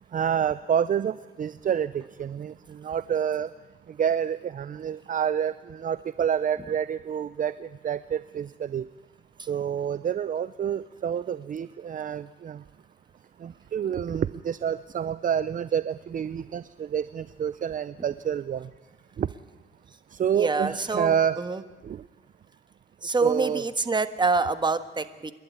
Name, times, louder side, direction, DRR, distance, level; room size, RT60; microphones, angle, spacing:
voice 1, 0.1-3.5 4.0-8.9 9.5-12.6 13.4-18.7 19.2-19.3 20.1-21.4 21.8-22.0 23.2-23.6, right 8 dB, 40° right, 16 dB, 0.6 m, -28 dB
voice 2, 20.3-21.6 23.0-25.3, right 3 dB, 20° right, 11 dB, 1.4 m, -26 dB
28.0 x 12.0 x 9.5 m, 1.3 s
cardioid pair, 90°, 20 cm